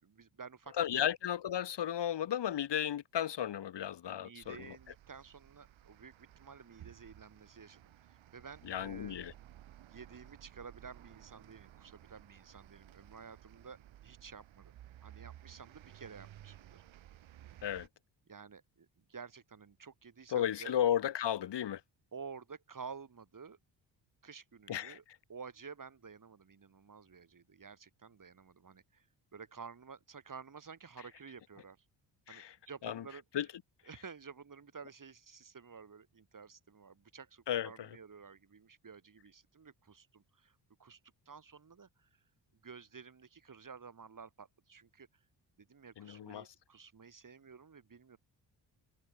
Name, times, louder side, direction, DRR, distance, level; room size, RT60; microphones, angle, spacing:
voice 1, 0.0-1.1 4.1-9.2 9.9-13.8 14.0-14.7 15.0-16.8 18.3-20.7 22.1-23.6 24.2-25.0 25.3-29.1 29.3-31.8 32.3-33.5 33.9-41.0 41.3-42.1 42.6-45.1 45.6-48.2, right 5 dB, 40° right, 4.7 m, -52 dB
voice 2, 0.8-4.6 8.7-9.3 17.6-17.9 20.3-21.8 24.7-25.0 32.3-32.5 32.8-33.0 33.3-33.5 37.5-37.7 46.0-46.5, left 10 dB, 55° left, 1.8 m, -34 dB
sound 1, 4.4-17.9, right 12 dB, 65° right, 2.7 m, -56 dB
supercardioid pair, 55°, 49 cm